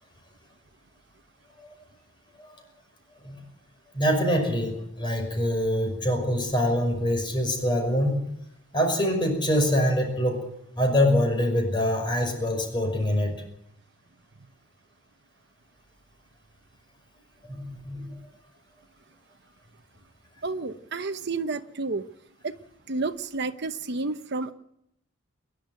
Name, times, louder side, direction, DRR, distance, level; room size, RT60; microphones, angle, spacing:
voice 1, 3.9-8.3 8.7-10.4 10.8-13.3 17.4-18.1, equal, 25° left, 4 dB, 5.7 m, -25 dB
voice 2, 20.4-22.0 22.4-22.5 22.9-24.5, right 3 dB, 55° right, 8 dB, 0.9 m, -30 dB
27.5 x 11.5 x 9.1 m, 0.80 s
head